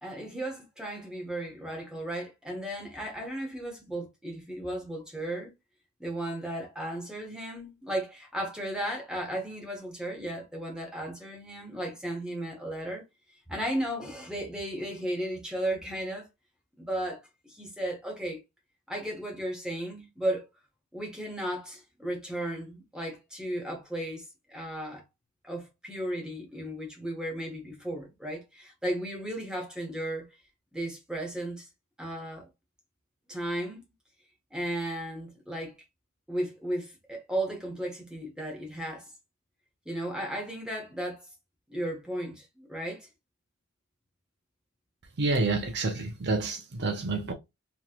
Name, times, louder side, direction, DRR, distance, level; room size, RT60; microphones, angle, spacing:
voice 1, 0.0-5.5 6.0-13.0 13.5-16.3 16.8-18.4 18.9-20.5 20.9-24.2 24.5-25.0 25.4-30.4 30.7-31.7 32.0-32.5 33.3-33.8 34.5-35.7 36.3-39.1 39.8-41.3 41.7-43.1, right 1 dB, 5° right, 1.1 m, -35 dB
voice 2, 45.2-47.3, right 3 dB, 50° right, 0.6 m, -28 dB
3.1 x 3.0 x 2.4 m
head